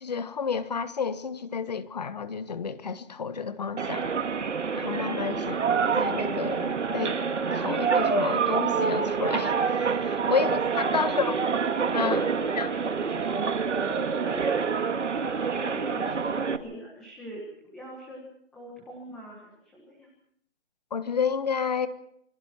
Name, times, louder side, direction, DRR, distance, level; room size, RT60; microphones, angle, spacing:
voice 1, 0.0-4.1 4.7-5.6 6.0-7.2 7.5-11.4 11.9-12.3 12.5-12.7 20.9-21.9, left 6 dB, 35° left, 13 dB, 1.4 m, -30 dB
sound 1, 3.8-16.6, right 5 dB, 70° right, 2.1 m, -27 dB
voice 2, 10.1-11.1 11.9-12.3 12.6-14.9 15.4-18.2 18.5-20.1, right 1 dB, ahead, -3 dB, 1.3 m, -43 dB
28.0 x 24.0 x 4.4 m, 0.73 s
hypercardioid pair, 175°, 37 cm